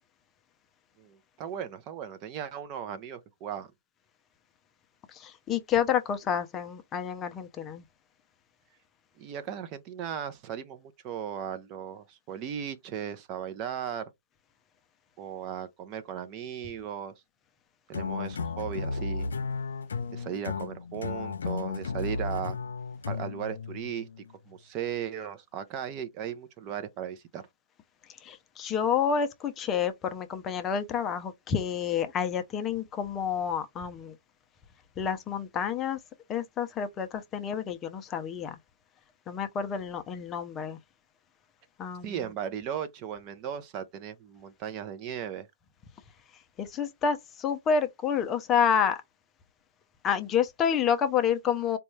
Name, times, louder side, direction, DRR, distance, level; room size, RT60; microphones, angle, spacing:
voice 1, 1.0-3.7 9.2-14.1 15.2-17.1 17.9-19.3 20.1-22.6 23.1-24.1 24.5-27.4 42.0-45.5, right 9 dB, 30° right, 0.6 m, -37 dB
voice 2, 5.1-7.8 28.2-34.1 35.0-36.0 36.3-38.6 39.3-40.8 41.8-42.2 46.6-49.0 50.0-51.8, left 7 dB, 20° left, 0.6 m, -29 dB
sound 1, 17.9-24.3, left 4 dB, 85° left, 0.5 m, -34 dB
4.1 x 2.3 x 3.1 m
hypercardioid pair, 145°, 0 cm